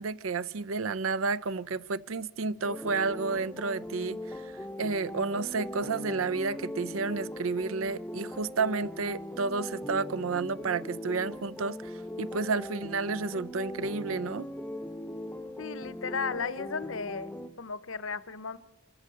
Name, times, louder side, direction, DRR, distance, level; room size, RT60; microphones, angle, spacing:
voice 1, 0.0-4.2 4.8-11.9 12.2-14.5, right 4 dB, 85° right, 0.6 m, -31 dB
sound 1, 2.6-17.5, left 1 dB, 5° left, 0.6 m, -40 dB
voice 2, 15.6-17.3 17.6-18.6, left 5 dB, 75° left, 0.9 m, -35 dB
26.5 x 13.5 x 7.8 m
head